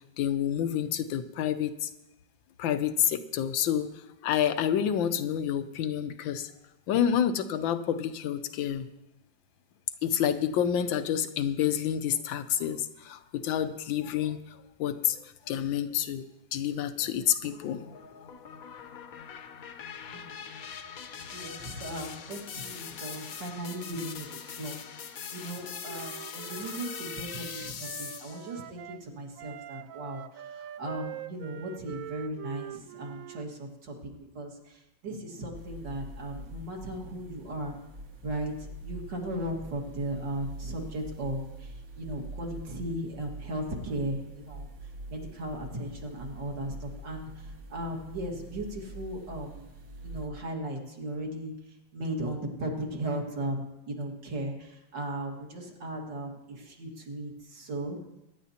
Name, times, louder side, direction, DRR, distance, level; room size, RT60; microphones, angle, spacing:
voice 1, 0.2-1.9 2.6-3.9 4.2-6.5 6.9-8.8 10.0-16.3 16.5-17.8, left 9 dB, 85° left, 11 dB, 1.5 m, -28 dB
sound 1, 17.4-28.6, left 7 dB, 60° left, 1.1 m, -42 dB
voice 2, 20.1-20.4 21.3-37.8 38.2-49.6 50.0-58.0, right 1 dB, 65° right, 1 dB, 2.5 m, -37 dB
Wind instrument woodwind instrument, 25.4-29.0 29.4-33.5, right 12 dB, 90° right, 0.7 m, -44 dB
sound 2, 35.5-50.3, right 1 dB, 50° right, 1.6 m, -44 dB
23.0 x 10.5 x 2.9 m, 0.95 s
omnidirectional pair, 2.0 m